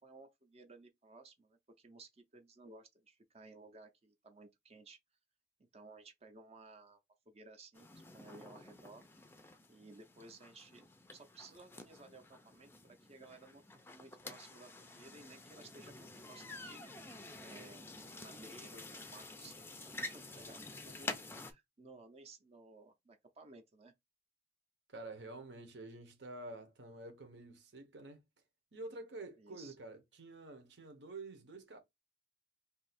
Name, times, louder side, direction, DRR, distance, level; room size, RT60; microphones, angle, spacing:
voice 1, 0.0-5.0 5.7-7.0 7.3-9.0 9.7-17.1 17.4-17.9 18.2-23.9 29.4-29.8, right 3 dB, 35° right, 0.6 m, -57 dB
sound 1, 7.8-21.5, left 2 dB, 15° left, 0.4 m, -49 dB
voice 2, 24.9-28.2 28.7-31.8, right 2 dB, 80° right, 0.9 m, -49 dB
2.7 x 2.4 x 4.1 m
head